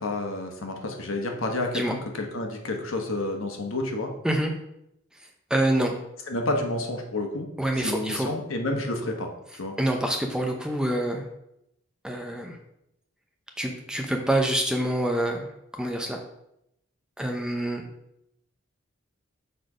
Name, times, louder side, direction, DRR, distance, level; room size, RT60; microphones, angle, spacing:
voice 1, 0.0-4.1 6.3-7.5 7.8-9.3 9.6-9.8, left 2 dB, 80° left, 3 dB, 1.1 m, -30 dB
voice 2, 5.5-6.0 7.6-8.3 9.8-11.3 12.0-12.6 13.6-15.5 15.7-16.2 17.2-17.9, right 1 dB, 5° right, 2 dB, 0.6 m, -26 dB
6.8 x 4.1 x 4.9 m, 0.81 s
head